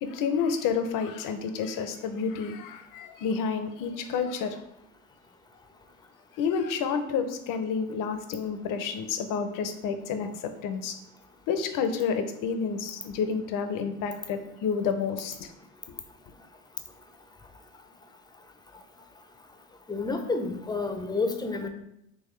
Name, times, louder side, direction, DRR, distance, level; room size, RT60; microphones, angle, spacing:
voice 1, 0.0-4.6 6.4-10.9 11.5-15.5 15.9-16.0, left 6 dB, 70° left, 8 dB, 0.6 m, -30 dB
voice 2, 19.9-21.7, left 3 dB, 15° left, 6 dB, 0.5 m, -29 dB
3.8 x 3.1 x 3.1 m, 0.80 s
supercardioid pair, 85°, 33 cm